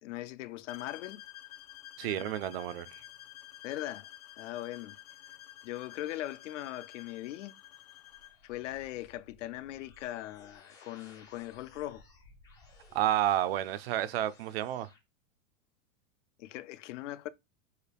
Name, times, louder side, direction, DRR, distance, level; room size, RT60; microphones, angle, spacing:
voice 1, 0.0-1.2 2.0-2.3 3.6-4.1 4.4-5.0 5.6-7.5 8.4-12.0 16.4-17.3, left 15 dB, 60° left, 0.5 m, -40 dB
sound 1, 0.7-8.4, left 14 dB, 80° left, 1.0 m, -51 dB
voice 2, 2.0-2.9 12.9-14.9, right 13 dB, 50° right, 0.5 m, -30 dB
sound 2, 7.4-15.0, left 3 dB, 10° left, 0.4 m, -59 dB
6.5 x 2.4 x 3.4 m
supercardioid pair, 155°, 41 cm